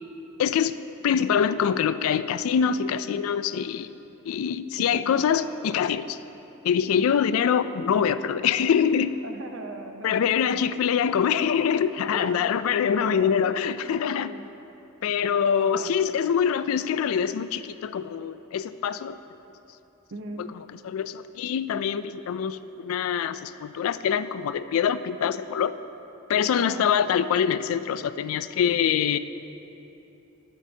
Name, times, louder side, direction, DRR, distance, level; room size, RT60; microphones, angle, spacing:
voice 1, 0.4-0.8 1.0-3.9 4.3-6.2 6.6-9.1 10.0-14.3 15.0-19.2 20.8-25.7 26.3-29.2, left 7 dB, 70° left, 15 dB, 0.3 m, -24 dB
voice 2, 4.8-5.3 6.9-7.1 9.2-10.3 12.1-13.3 14.1-14.5 15.6-16.0 20.1-20.4 26.6-26.8, right 3 dB, 65° right, 5 dB, 0.7 m, -39 dB
12.0 x 9.1 x 2.8 m, 2.9 s
head